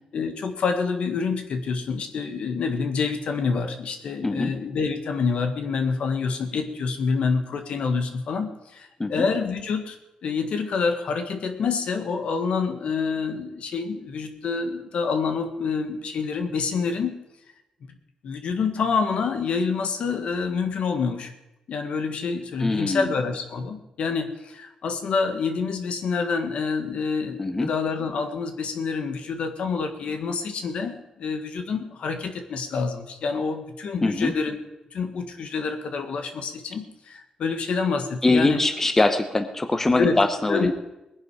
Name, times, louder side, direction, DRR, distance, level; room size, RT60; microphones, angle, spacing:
voice 1, 0.1-10.0 10.2-17.2 17.9-18.0 18.2-21.3 21.7-34.6 34.9-38.6 40.0-40.2 40.5-40.7, left 5 dB, 70° left, 6 dB, 1.6 m, -27 dB
voice 2, 22.6-23.1 27.4-27.7 34.0-34.3 38.2-40.7, left 2 dB, 20° left, 8 dB, 1.0 m, -22 dB
20.0 x 10.5 x 4.9 m, 0.94 s
cardioid pair, 120°, 2 cm